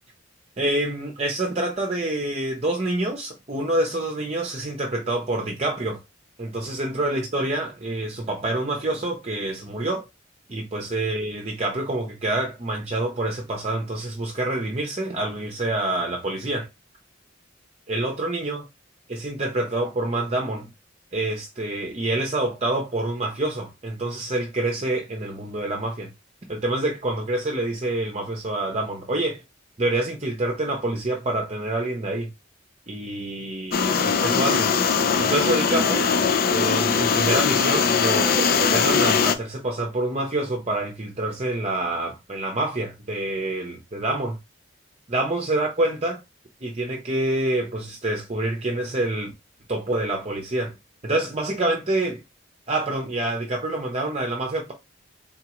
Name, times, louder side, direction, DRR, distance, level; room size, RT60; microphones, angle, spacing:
voice 1, 0.6-6.0 6.4-10.0 10.5-16.7 17.9-18.6 19.1-20.7 21.1-26.1 26.5-29.4 29.8-32.3 32.9-34.7 35.2-36.1 36.5-44.4 45.1-46.2 46.6-49.3 49.7-50.7 51.0-52.2 52.7-54.7, right 2 dB, 30° right, 0.7 m, -27 dB
sound 1, 33.7-39.3, left 6 dB, 50° left, 0.5 m, -21 dB
3.8 x 3.6 x 2.9 m
head